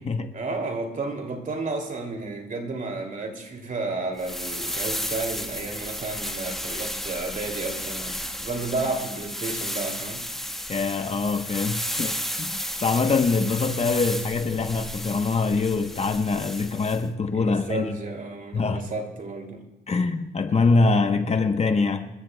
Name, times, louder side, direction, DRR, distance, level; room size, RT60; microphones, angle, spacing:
voice 1, 0.3-10.2 17.3-19.6, right 3 dB, 40° right, 2.6 m, -32 dB
sound 1, 4.2-17.0, equal, ahead, 1.3 m, -33 dB
voice 2, 10.7-18.0 18.5-18.9 19.9-22.1, left 4 dB, 35° left, 1.0 m, -24 dB
27.5 x 13.5 x 2.3 m
cardioid pair, 90°, 20 cm